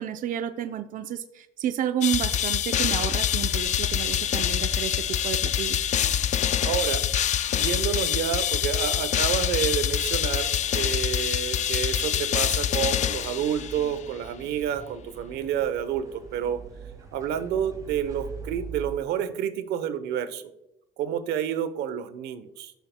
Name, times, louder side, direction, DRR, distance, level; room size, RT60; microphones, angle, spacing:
voice 1, 0.0-5.9, right 10 dB, 50° right, 8 dB, 0.5 m, -31 dB
sound 1, 2.0-13.9, left 10 dB, 45° left, 0.4 m, -25 dB
sound 2, 2.9-19.0, right 4 dB, 20° right, 2.0 m, -44 dB
voice 2, 6.3-7.0 7.5-16.6 17.1-20.4 21.0-22.7, right 9 dB, 85° right, 12 dB, 0.9 m, -29 dB
13.5 x 7.0 x 2.2 m, 0.85 s
cardioid pair, 110°, 17 cm